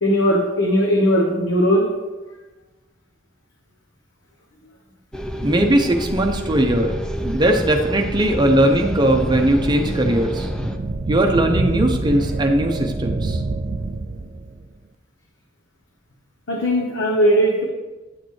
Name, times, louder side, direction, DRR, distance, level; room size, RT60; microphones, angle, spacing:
voice 1, 0.0-1.9 16.5-17.6, equal, 80° left, -1 dB, 1.0 m, -18 dB
sound 1, 5.1-10.8, equal, 5° left, 0.4 m, -29 dB
voice 2, 5.4-10.5 11.1-13.4, right 1 dB, 25° right, 3 dB, 0.8 m, -19 dB
sound 2, 8.5-14.6, right 3 dB, 50° right, 0.5 m, -27 dB
9.5 x 6.5 x 3.3 m, 1.2 s
head